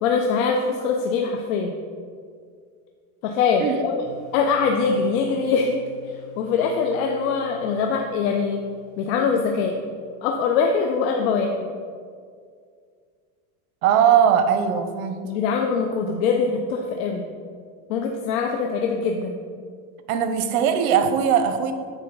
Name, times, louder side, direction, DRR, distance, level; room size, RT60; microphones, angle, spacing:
voice 1, 0.0-1.7 3.2-4.0 4.3-8.6 9.0-9.7 10.2-11.7 15.2-17.2 17.9-19.4, left 5 dB, 75° left, 3 dB, 0.8 m, -23 dB
sound 1, 4.0-10.9, left 7 dB, ahead, 1.6 m, -48 dB
voice 2, 13.8-15.2 20.1-21.7, right 8 dB, 90° right, 8 dB, 0.9 m, -19 dB
8.3 x 4.8 x 5.4 m, 2.1 s
cardioid pair, 150°, 41 cm